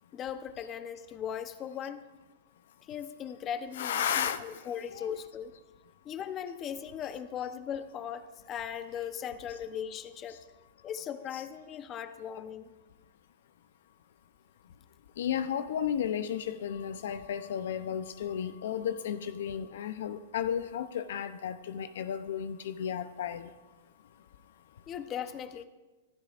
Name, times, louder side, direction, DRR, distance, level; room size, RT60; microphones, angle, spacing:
voice 1, 0.1-2.0 2.8-5.5 6.0-10.4 10.8-12.7 24.9-25.6, left 8 dB, 30° left, 11 dB, 0.8 m, -38 dB
voice 2, 3.7-4.4 4.9-5.2 11.3-11.4 15.2-23.5, left 9 dB, 70° left, 12 dB, 0.6 m, -33 dB
25.5 x 12.5 x 2.5 m, 1.2 s
hypercardioid pair, 130°, 0 cm